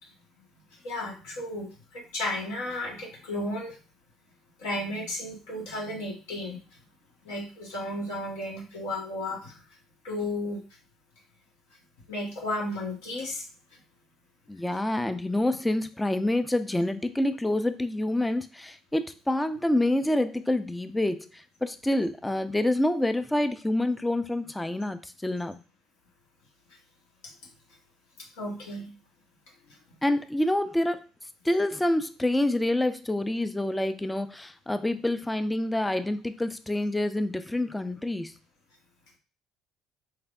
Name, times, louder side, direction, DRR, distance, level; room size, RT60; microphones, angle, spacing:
voice 1, 0.7-3.8 4.6-6.6 7.2-9.6 10.0-10.6 12.1-13.4 13.7-13.8 28.4-28.9 29.7-29.8, left 1 dB, 70° left, -1 dB, 1.3 m, -34 dB
voice 2, 14.5-25.6 30.0-31.0 31.4-38.3, left 1 dB, 10° left, 11 dB, 0.4 m, -27 dB
4.4 x 3.3 x 2.4 m, 0.34 s
figure-of-eight pair, 55°, 0 cm